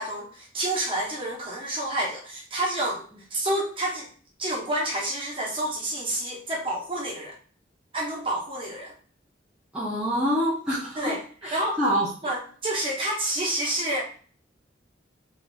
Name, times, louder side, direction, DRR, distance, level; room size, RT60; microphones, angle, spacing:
voice 1, 0.0-3.0 3.3-4.1 4.4-7.3 7.9-8.9 11.0-11.2 11.5-11.8 12.2-14.0, right 1 dB, 25° right, -3 dB, 1.0 m, -29 dB
voice 2, 9.7-12.1, equal, 5° right, -9 dB, 0.7 m, -26 dB
3.4 x 2.9 x 2.5 m, 0.43 s
head